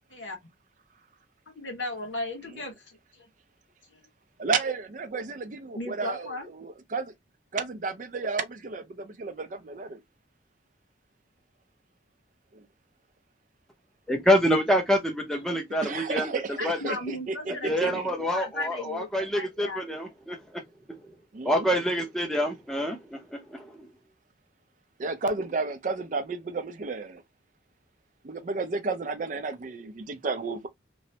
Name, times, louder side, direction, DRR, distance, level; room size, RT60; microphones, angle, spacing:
voice 1, 1.5-3.3 3.9-4.0 5.7-6.5 15.3-15.6 16.6-18.0 18.3-19.8, left 2 dB, 90° left, 1.4 m, -36 dB
voice 2, 4.4-7.1 7.5-10.0 12.5-12.7 15.8-17.5 17.8-18.1 21.3-21.7 25.0-27.2 28.2-30.7, right 4 dB, 45° right, 0.4 m, -32 dB
voice 3, 14.1-16.3 16.6-16.9 17.6-20.6 20.9-21.0 21.4-23.9, equal, 5° left, 0.6 m, -27 dB
3.1 x 2.0 x 2.7 m
head